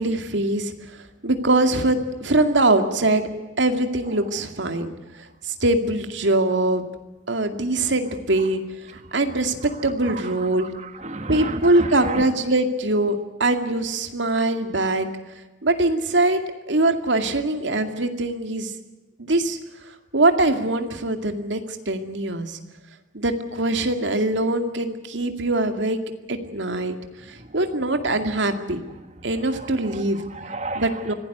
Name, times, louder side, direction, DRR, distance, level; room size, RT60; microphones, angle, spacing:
voice 1, 0.0-3.2 3.6-4.9 5.2-6.9 7.3-8.6 9.1-10.7 11.3-15.1 15.6-16.4 16.7-18.7 19.2-19.6 20.1-22.6 23.1-26.0 26.3-27.0 27.3-28.8 29.2-30.2 30.8-31.1, right 2 dB, 80° right, 6 dB, 2.3 m, -22 dB
voice 2, 9.8-12.2 27.4-27.6 29.4-31.1, right 2 dB, 40° right, 6 dB, 2.0 m, -34 dB
25.5 x 17.5 x 8.0 m, 1.1 s
head